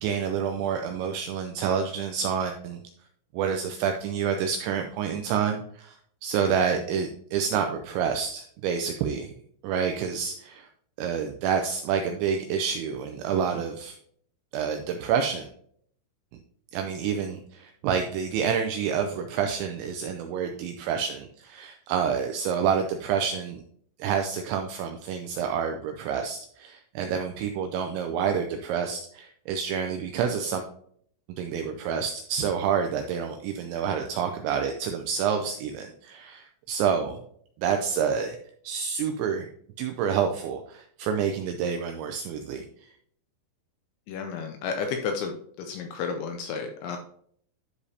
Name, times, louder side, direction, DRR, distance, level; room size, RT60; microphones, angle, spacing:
voice 1, 0.0-2.8 3.3-6.0 6.2-9.3 9.6-10.7 11.0-14.0 14.5-15.5 16.7-23.6 24.0-30.6 31.4-37.2 37.6-38.4 38.6-39.5 39.8-42.6, right 7 dB, 85° right, 5 dB, 2.6 m, -28 dB
voice 2, 44.1-47.0, left 5 dB, 85° left, 5 dB, 2.6 m, -32 dB
11.0 x 5.0 x 2.7 m, 0.64 s
omnidirectional pair, 5.8 m